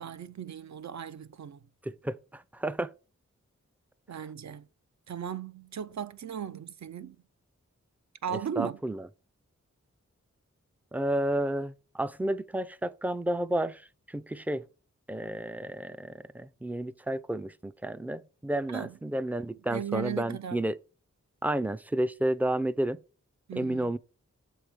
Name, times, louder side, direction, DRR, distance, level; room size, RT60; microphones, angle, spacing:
voice 1, 0.0-1.6 4.1-4.7 5.1-7.2 8.2-8.8 18.7-19.0 19.7-20.6 23.5-23.9, right 8 dB, 70° right, 0.5 m, -37 dB
voice 2, 1.8-2.9 8.6-9.0 10.9-13.8 14.1-14.6 15.1-20.8 21.4-23.0 23.5-24.0, right 1 dB, 5° right, 0.3 m, -31 dB
7.1 x 4.7 x 5.0 m
wide cardioid pair, 90°, 29 cm